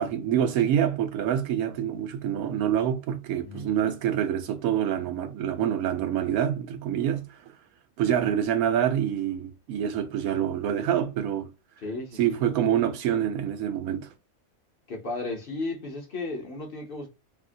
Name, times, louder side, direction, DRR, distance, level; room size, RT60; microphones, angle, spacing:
voice 1, 0.0-7.2 8.0-11.5 12.2-14.1, right 9 dB, 90° right, 1.1 m, -26 dB
voice 2, 3.4-3.7 11.8-12.4 14.9-17.1, left 2 dB, 50° left, 0.7 m, -34 dB
2.8 x 2.7 x 2.6 m
omnidirectional pair, 1.5 m